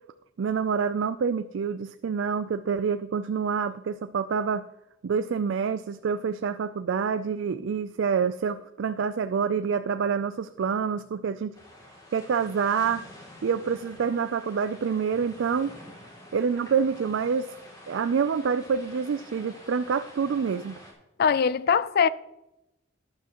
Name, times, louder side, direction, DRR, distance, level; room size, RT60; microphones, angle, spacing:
voice 1, 0.4-4.7 5.0-11.5 12.1-13.0 13.4-15.7 16.3-17.6 17.9-20.7, right 6 dB, 70° right, 0.4 m, -27 dB
sound 1, 11.5-20.9, left 1 dB, 20° left, 2.6 m, -48 dB
voice 2, 21.2-22.1, left 6 dB, 50° left, 0.4 m, -21 dB
12.0 x 10.5 x 3.0 m
head